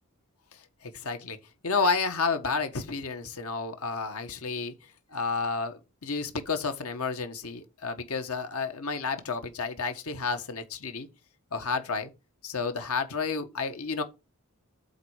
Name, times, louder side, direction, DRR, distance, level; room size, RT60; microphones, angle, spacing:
voice 1, 0.8-1.4 1.6-4.7 5.1-11.1 11.5-12.1 12.4-14.0, left 4 dB, 80° left, 1.5 m, -31 dB
8.0 x 4.5 x 6.4 m
head